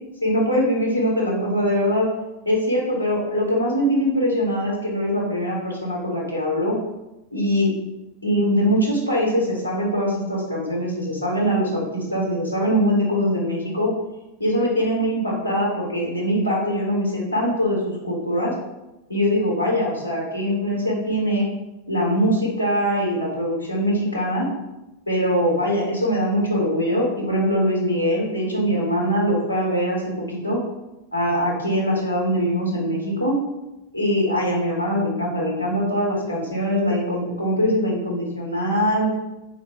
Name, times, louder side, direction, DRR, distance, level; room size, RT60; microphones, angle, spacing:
voice 1, 0.2-2.1 2.4-6.8 7.3-7.7 8.2-13.9 14.4-18.5 19.1-21.5 21.9-24.5 25.1-30.0 30.3-30.6 31.1-33.4 33.9-39.1, equal, 80° left, -4 dB, 1.0 m, -22 dB
3.7 x 2.2 x 3.4 m, 0.97 s
figure-of-eight pair, 90°, 0 cm